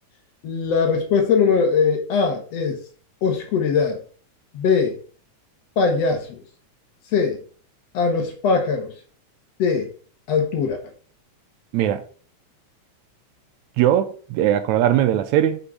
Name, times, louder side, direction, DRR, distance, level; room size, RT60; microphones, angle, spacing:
voice 1, 0.4-2.8 3.2-4.0 4.5-5.0 5.8-6.4 7.1-7.4 7.9-8.9 9.6-9.9 10.3-10.8, left 5 dB, 65° left, 2.2 m, -20 dB
voice 2, 13.8-15.6, right 11 dB, 80° right, 1.9 m, -19 dB
6.1 x 5.4 x 4.9 m
omnidirectional pair, 3.4 m